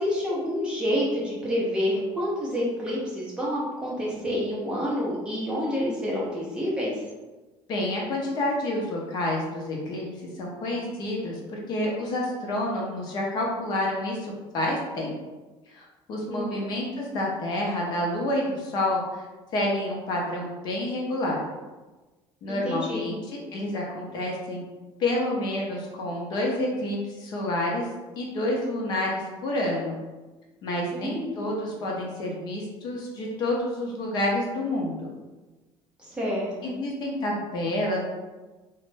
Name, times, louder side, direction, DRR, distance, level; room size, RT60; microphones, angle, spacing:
voice 1, 0.0-6.9 16.3-16.6 22.5-23.1 30.9-31.6 36.0-36.7, equal, 10° right, -6 dB, 0.6 m, -28 dB
voice 2, 7.7-10.1 10.4-15.1 15.7-19.3 19.5-21.4 22.4-24.6 25.0-27.9 28.2-30.0 30.6-35.1 36.6-38.0, left 1 dB, 45° left, -2 dB, 0.6 m, -29 dB
2.9 x 2.1 x 3.3 m, 1.2 s
cardioid pair, 170°, 10 cm